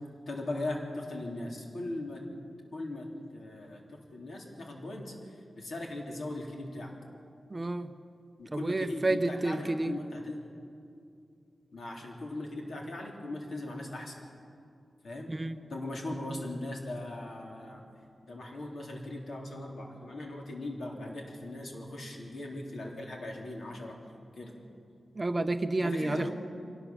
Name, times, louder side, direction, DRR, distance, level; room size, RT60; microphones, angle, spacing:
voice 1, 0.3-2.2 2.7-3.1 3.3-6.9 8.4-10.4 11.7-14.2 15.0-15.3 15.7-17.8 18.2-24.0 24.3-24.6 25.8-26.3, left 1 dB, 65° left, 0 dB, 3.4 m, -39 dB
voice 2, 7.5-7.9 8.5-10.0 15.3-15.6 25.1-26.3, right 2 dB, 20° right, 8 dB, 0.6 m, -30 dB
24.0 x 18.0 x 7.2 m, 2.5 s
wide cardioid pair, 175°, 0 cm